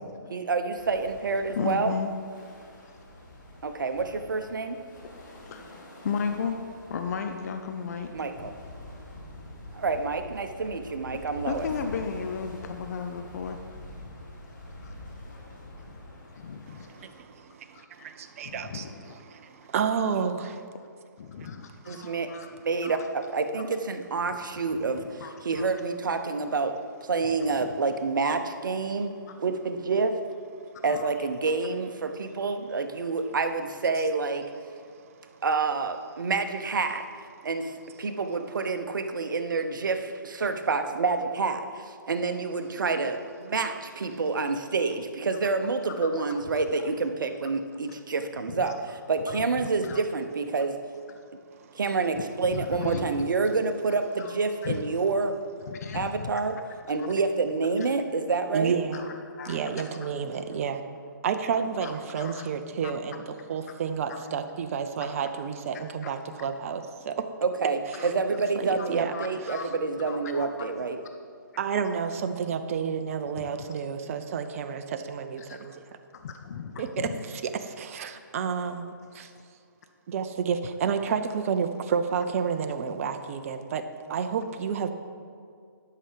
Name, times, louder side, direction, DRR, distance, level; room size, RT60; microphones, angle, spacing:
voice 1, 0.3-1.9 3.6-4.8 8.1-8.5 9.7-11.7 21.9-26.7 27.1-29.1 29.4-30.2 30.8-34.5 35.4-37.0 37.4-50.7 51.7-55.4 55.9-56.6 56.9-58.8 67.4-71.0, right 4 dB, 70° right, 8 dB, 0.9 m, -28 dB
Sea recorded from Tonnara platform, 0.8-17.2, left 1 dB, 65° left, 2.7 m, -45 dB
voice 2, 1.6-2.1 5.5-6.6 6.9-8.5 11.1-13.6 14.8-14.9 15.6-15.8 16.4-16.9 17.7-17.9 18.4-19.4 21.2-22.5 22.8-23.0 24.3-24.4 24.8-25.6 30.8-31.3 46.0-46.4 48.5-48.7 49.4-49.5 49.8-50.0 52.2-52.3 52.5-53.3 54.2-54.4 54.6-54.8 55.7-56.4 57.0-57.1 58.9-59.7 60.0-60.1 61.8-62.5 62.8-62.9 63.5-63.6 65.1-65.2 65.7-66.1 69.1-69.7 70.0-70.5 73.4-73.7 75.4-75.8 76.1-77.2 79.0-79.2, left 6 dB, 50° left, 6 dB, 0.7 m, -36 dB
voice 3, 16.7-20.6 34.9-35.0 58.5-59.1 59.4-60.8 61.2-67.3 68.0-68.1 68.5-69.1 71.6-75.8 76.8-79.3 80.1-84.9, right 6 dB, 40° right, 8 dB, 0.7 m, -30 dB
11.0 x 5.8 x 5.1 m, 2.2 s
figure-of-eight pair, 140°, 11 cm